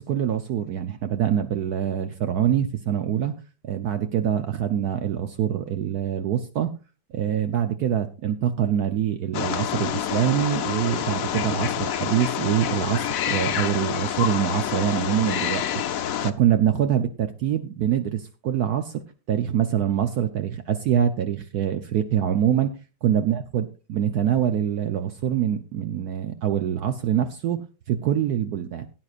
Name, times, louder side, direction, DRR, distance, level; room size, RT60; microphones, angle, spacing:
voice 1, 0.0-3.3 3.6-6.7 7.1-15.7 16.2-22.7 23.0-28.9, right 10 dB, 65° right, 7 dB, 1.2 m, -24 dB
Wild animals, 9.3-16.3, left 10 dB, 60° left, 1.0 m, -27 dB
17.5 x 9.6 x 2.4 m, 0.32 s
omnidirectional pair, 1.9 m